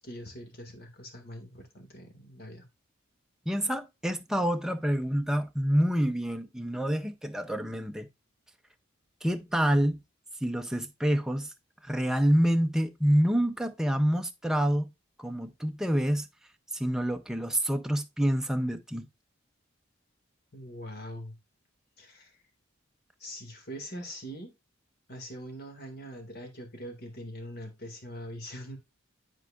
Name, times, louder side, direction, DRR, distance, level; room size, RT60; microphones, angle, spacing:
voice 1, 0.0-2.7 20.5-21.3 22.0-22.4 23.2-24.5 25.1-28.8, equal, 50° left, 1.9 m, -42 dB
voice 2, 3.5-8.1 9.2-10.0 10.4-11.5 11.8-14.9 15.2-16.3 16.7-19.1, equal, 5° right, 0.5 m, -27 dB
10.5 x 4.5 x 2.4 m
head